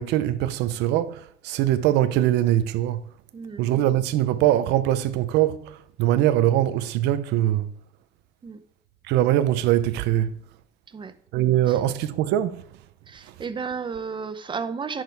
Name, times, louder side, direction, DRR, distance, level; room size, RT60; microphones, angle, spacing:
voice 1, 0.0-3.0 3.6-7.7 9.0-10.4 11.3-12.6 13.3-13.4, right 13 dB, 90° right, 0.6 m, -22 dB
voice 2, 3.3-3.7 8.4-8.6 10.9-11.1 11.7-11.8 13.1-15.0, right 5 dB, 30° right, 0.7 m, -33 dB
10.5 x 6.2 x 3.4 m
cardioid pair, 110°, 17 cm